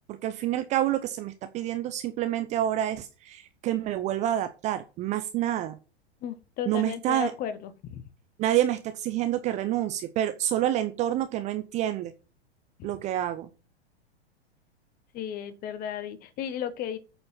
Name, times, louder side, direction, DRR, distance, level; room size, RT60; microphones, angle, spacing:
voice 1, 0.1-5.8 6.7-7.3 8.4-12.1 12.8-13.5, right 12 dB, 20° right, 11 dB, 0.6 m, -28 dB
voice 2, 6.2-8.0 15.1-17.0, left 9 dB, 25° left, 12 dB, 1.4 m, -34 dB
8.5 x 7.0 x 5.8 m, 0.33 s
figure-of-eight pair, 100°, 33 cm